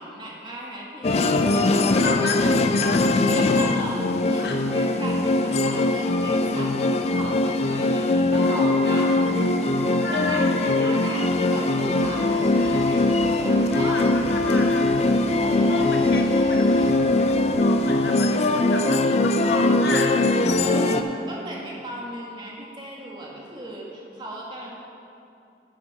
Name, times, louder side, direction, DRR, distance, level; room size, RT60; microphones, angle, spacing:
voice 1, 0.0-4.4 4.7-9.2 10.1-14.0 14.4-14.8 15.4-16.1 20.6-24.7, right 1 dB, 25° right, -3 dB, 1.7 m, -37 dB
sound 1, 1.0-21.0, left 2 dB, 35° left, 0.4 m, -21 dB
voice 2, 1.9-3.0 4.4-4.6 5.6-5.7 10.0-10.9 13.7-15.1 15.6-20.1 20.8-21.3, left 3 dB, 65° left, 1 dB, 1.1 m, -33 dB
sound 2, 8.3-19.8, equal, 55° right, 2.4 m, -39 dB
sound 3, 11.9-17.5, right 1 dB, 90° right, 2.0 m, -39 dB
9.9 x 8.0 x 4.9 m, 2.6 s
head